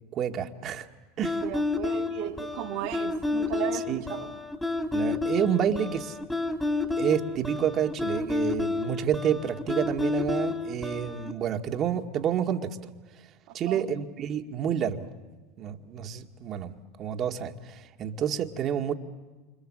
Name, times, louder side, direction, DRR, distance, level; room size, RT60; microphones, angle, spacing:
voice 1, 0.1-0.9 1.2-1.4 3.9-4.0 4.9-6.2 7.0-12.8 13.5-15.1 15.6-16.7 17.0-18.9, right 9 dB, 45° right, 2.0 m, -29 dB
sound 1, 1.2-11.3, left 3 dB, 10° left, 3.0 m, -30 dB
voice 2, 1.4-4.4 13.5-13.9, right 12 dB, 60° right, 2.1 m, -36 dB
28.5 x 26.5 x 7.5 m
hypercardioid pair, 95°, 0 cm